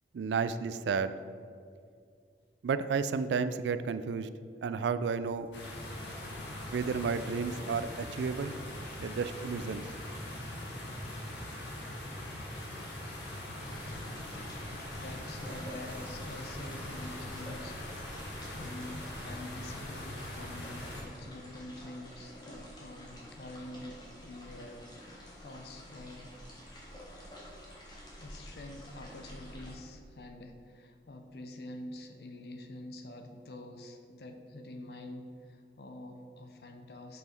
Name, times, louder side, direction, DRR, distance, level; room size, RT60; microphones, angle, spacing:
voice 1, 0.1-1.1 2.6-4.3 4.6-5.5 6.7-8.6 9.0-9.9, right 5 dB, 80° right, 13 dB, 0.3 m, -32 dB
sound 1, 5.2-17.4, right 1 dB, 10° right, 0.5 m, -53 dB
sound 2, 5.5-21.0, left 1 dB, 85° left, 1.6 m, -42 dB
sound 3, 13.6-29.7, equal, 25° left, 1.3 m, -49 dB
voice 2, 14.7-17.8 18.1-26.3 28.2-37.2, left 1 dB, 65° left, 5 dB, 0.7 m, -46 dB
6.2 x 5.5 x 4.4 m, 2.3 s
head